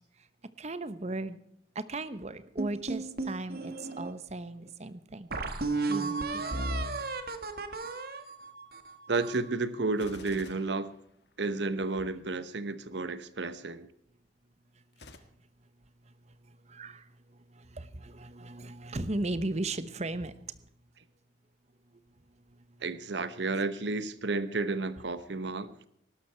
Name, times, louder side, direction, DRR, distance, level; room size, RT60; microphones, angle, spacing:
voice 1, 0.6-1.4 1.7-5.3 5.9-6.8 16.7-17.0 17.5-20.3, right 2 dB, 35° right, 1.0 m, -36 dB
sound 1, 2.6-4.1 4.7-4.8 5.3-9.5, right 3 dB, 55° right, 1.6 m, -34 dB
voice 2, 9.1-10.9 11.4-13.9 22.8-25.7, right 3 dB, 70° right, 1.0 m, -32 dB
Gunshot gunfire, 9.9-11.7 14.9-15.2, left 3 dB, 60° left, 1.6 m, -50 dB
19.5 x 12.0 x 4.5 m
head